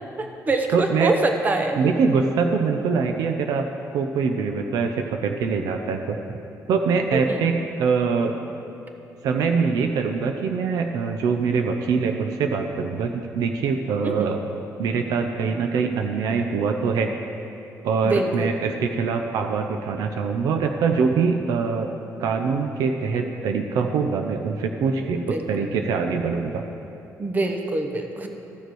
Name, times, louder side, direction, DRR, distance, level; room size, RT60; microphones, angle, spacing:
voice 1, 0.2-1.8 7.1-7.4 14.0-14.3 18.0-18.5 25.1-25.7 27.2-28.3, right 2 dB, 25° right, 4 dB, 0.9 m, -25 dB
voice 2, 0.7-1.1 1.8-3.7 3.9-6.4 6.7-8.3 9.2-14.4 14.8-17.1 17.8-21.9 22.2-26.6, right 5 dB, 85° right, 5 dB, 0.6 m, -23 dB
14.5 x 6.7 x 4.7 m, 2.9 s
cardioid pair, 130°, 6 cm